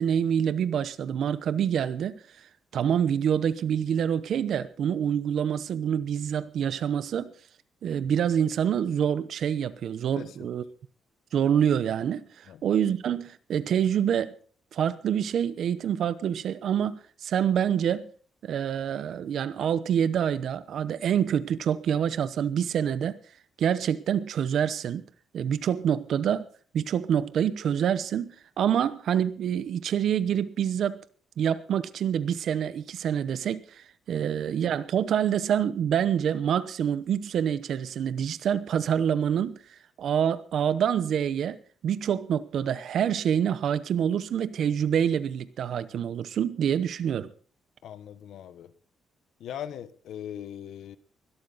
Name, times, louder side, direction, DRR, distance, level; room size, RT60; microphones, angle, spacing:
voice 1, 0.0-2.2 2.7-7.3 7.8-10.6 11.3-14.3 14.7-18.1 18.4-23.2 23.6-25.0 25.3-26.5 26.7-31.0 31.4-39.6 40.0-41.6 41.8-47.3, right 8 dB, 60° right, 0.9 m, -26 dB
voice 2, 47.8-48.7 49.4-51.0, left 10 dB, 75° left, 1.1 m, -39 dB
21.5 x 12.5 x 4.1 m
cardioid pair, 145°, 0 cm